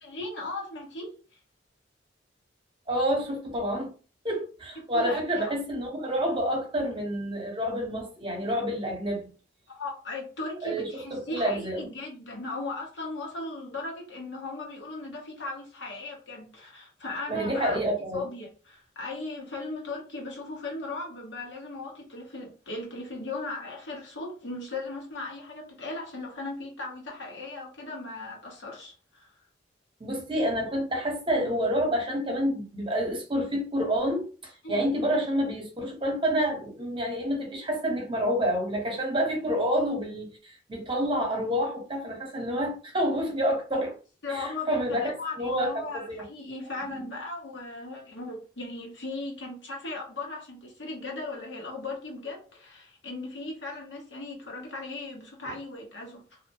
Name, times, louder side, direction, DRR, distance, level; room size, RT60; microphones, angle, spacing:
voice 1, 0.0-1.2 4.8-5.5 9.7-17.8 18.1-29.3 34.6-34.9 44.2-56.4, left 2 dB, 85° left, 1.1 m, -37 dB
voice 2, 2.9-3.9 4.2-9.3 10.6-11.8 17.3-18.2 30.0-43.9 44.3-45.1 45.4-46.2 46.9-47.1, equal, 30° right, 0.9 m, -28 dB
2.6 x 2.1 x 3.0 m
head